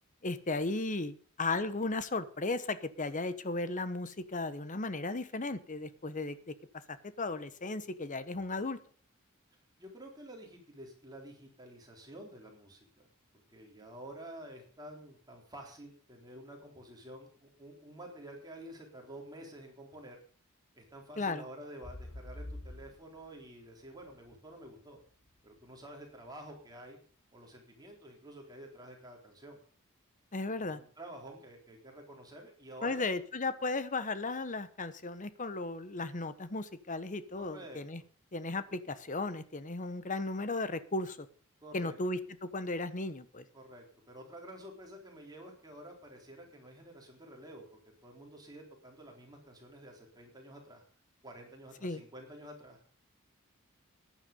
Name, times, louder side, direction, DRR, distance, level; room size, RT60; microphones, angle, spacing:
voice 1, 0.2-6.5 7.2-8.8 21.2-21.4 30.3-30.8 32.8-38.0 38.3-41.3 41.7-42.2 42.5-43.4 51.8-52.0, left 3 dB, 35° left, 13 dB, 1.1 m, -35 dB
voice 2, 9.8-13.1 13.5-20.2 20.7-25.0 25.4-27.0 27.3-29.6 30.5-33.1 37.4-38.1 41.6-42.0 43.5-50.8 51.2-52.8, right 1 dB, 20° right, 1 dB, 4.0 m, -50 dB
sound 1, 21.8-25.7 26.3-26.4, left 1 dB, 85° left, 4.8 m, -47 dB
14.5 x 10.5 x 5.3 m, 0.43 s
head